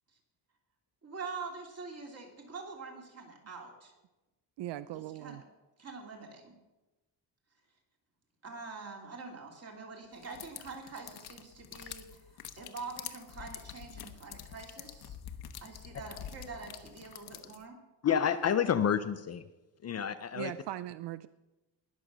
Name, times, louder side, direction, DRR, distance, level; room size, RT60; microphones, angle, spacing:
voice 1, 1.0-3.9 4.9-5.4 5.8-6.6 8.4-15.2 15.6-17.8, right 4 dB, 35° right, 1 dB, 2.9 m, -45 dB
voice 2, 4.6-5.4 20.3-21.3, right 13 dB, 75° right, 15 dB, 0.5 m, -39 dB
sound 1, 10.2-17.6, left 10 dB, 65° left, 1.0 m, -47 dB
voice 3, 18.0-19.4 19.8-20.5, left 8 dB, 40° left, 12 dB, 0.5 m, -29 dB
20.0 x 6.8 x 6.1 m, 1.1 s
cardioid pair, 170°, 42 cm